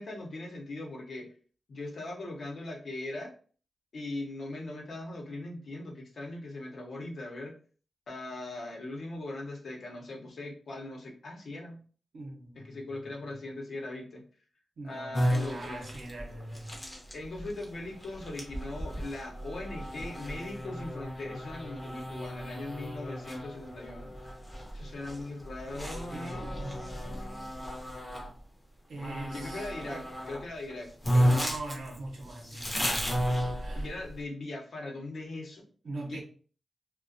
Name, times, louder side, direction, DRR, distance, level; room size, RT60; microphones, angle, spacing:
voice 1, 0.0-1.3 1.7-3.3 3.9-7.5 8.1-11.8 12.6-14.2 14.8-15.8 17.1-24.2 24.7-27.5 29.3-31.4 33.8-35.7 36.1-36.2, left 2 dB, 65° left, 0.7 m, -40 dB
voice 2, 12.1-13.4 14.8-16.8 25.7-26.9 28.9-30.1 31.2-32.9 33.6-33.9 35.8-36.2, right 2 dB, 80° right, 0.7 m, -42 dB
sound 1, 15.1-28.3 29.0-30.4 30.7-30.8 31.0-34.1, equal, 15° left, 0.6 m, -33 dB
2.4 x 2.2 x 2.5 m
wide cardioid pair, 135°, 0 cm